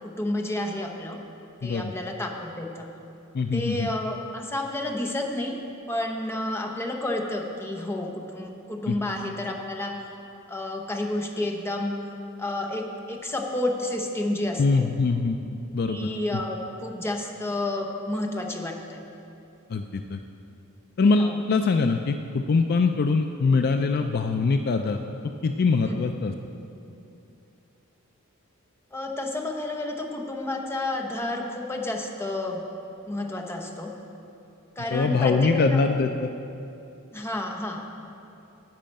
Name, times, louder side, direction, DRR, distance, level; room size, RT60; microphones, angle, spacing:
voice 1, 0.0-1.2 1.6-2.9 3.5-5.5 5.9-10.0 10.5-12.0 12.4-14.9 15.9-19.0 21.2-21.4 25.8-26.2 28.9-32.7 33.1-33.9 34.8-35.8 37.1-37.8, left 1 dB, 10° left, 2 dB, 0.9 m, -30 dB
voice 2, 1.6-1.9 3.3-3.9 8.9-9.0 14.6-16.4 19.7-20.2 21.0-25.0 25.4-26.3 34.9-36.3, left 4 dB, 45° left, 6 dB, 0.4 m, -23 dB
10.5 x 5.7 x 8.7 m, 2.8 s
head